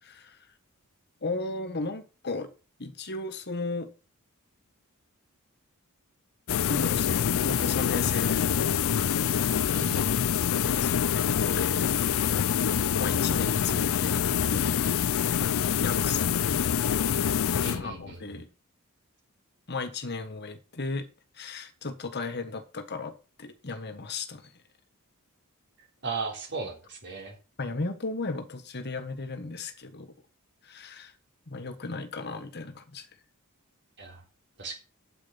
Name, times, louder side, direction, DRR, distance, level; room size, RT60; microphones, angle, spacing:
voice 1, 0.0-0.4 1.2-2.5 2.8-3.9 6.7-8.7 10.5-11.9 13.0-15.0 15.8-16.7 17.8-18.5 19.7-21.1 21.3-24.5 27.6-30.1 30.6-31.1 31.5-33.1, left 3 dB, 50° left, 1.5 m, -35 dB
sound 1, 6.5-18.1, left 8 dB, 65° left, 0.4 m, -26 dB
voice 2, 9.7-10.1 17.6-18.2 26.0-27.4 34.0-34.2 34.6-34.8, right 4 dB, 55° right, 3.6 m, -36 dB
8.9 x 8.3 x 5.7 m
head